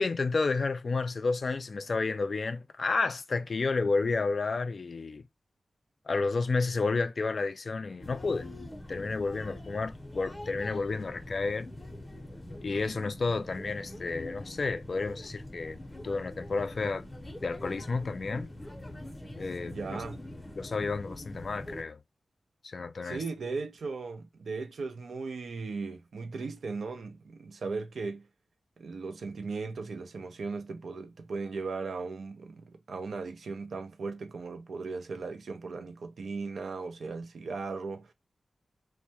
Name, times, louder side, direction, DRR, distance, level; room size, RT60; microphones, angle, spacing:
voice 1, 0.0-5.2 6.1-8.5 8.9-11.7 12.6-17.0 17.4-18.5 19.4-20.0 20.6-22.0 22.6-23.2, left 3 dB, 60° left, 0.3 m, -31 dB
sound 1, 8.0-21.8, left 1 dB, 25° left, 0.6 m, -44 dB
voice 2, 19.7-20.2 23.0-28.3 28.8-38.1, right 4 dB, 80° right, 0.4 m, -37 dB
2.2 x 2.1 x 2.7 m
cardioid pair, 45°, 0 cm